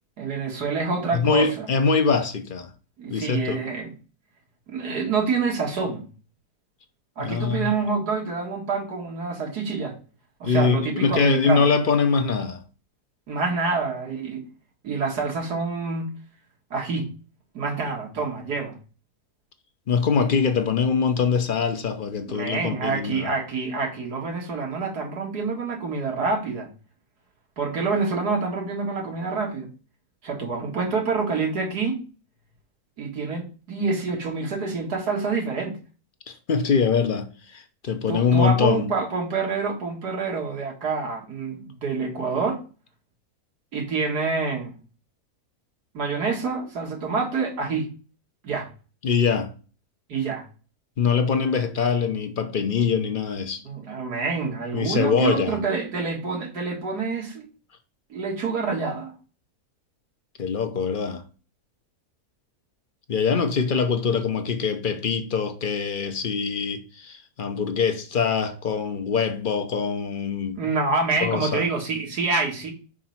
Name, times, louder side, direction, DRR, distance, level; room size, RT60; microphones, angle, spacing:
voice 1, 0.2-1.7 3.0-3.9 4.7-6.0 7.2-10.0 10.4-11.7 13.3-14.4 14.8-16.1 16.7-17.1 17.5-18.8 22.3-26.7 27.6-29.7 30.2-32.0 33.0-35.8 38.1-42.6 43.7-44.8 45.9-47.9 48.4-48.7 50.1-50.5 53.6-57.5 58.1-59.1 70.5-72.7, right 4 dB, 90° right, 2.3 m, -27 dB
voice 2, 1.1-2.7 3.1-3.6 7.2-7.7 10.4-12.6 19.9-23.3 36.3-38.8 49.0-49.5 51.0-53.6 54.7-55.6 60.4-61.2 63.1-70.6 71.2-71.7, left 5 dB, 45° left, 0.8 m, -23 dB
5.3 x 4.9 x 5.8 m
omnidirectional pair, 1.6 m